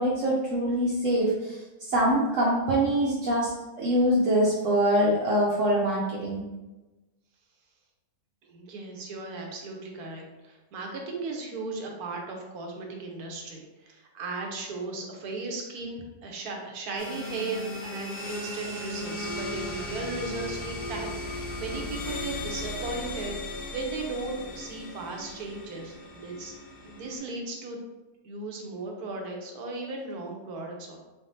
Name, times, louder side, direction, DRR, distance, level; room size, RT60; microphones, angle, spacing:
voice 1, 0.0-3.5 3.8-6.4, right 1 dB, 65° right, -6 dB, 1.0 m, -24 dB
voice 2, 8.5-26.5 26.8-27.8 28.2-31.0, right 3 dB, 85° right, 1 dB, 1.3 m, -36 dB
sound 1, 17.0-27.2, left 1 dB, 45° left, 0.9 m, -36 dB
4.1 x 3.6 x 2.7 m, 1.1 s
omnidirectional pair, 1.6 m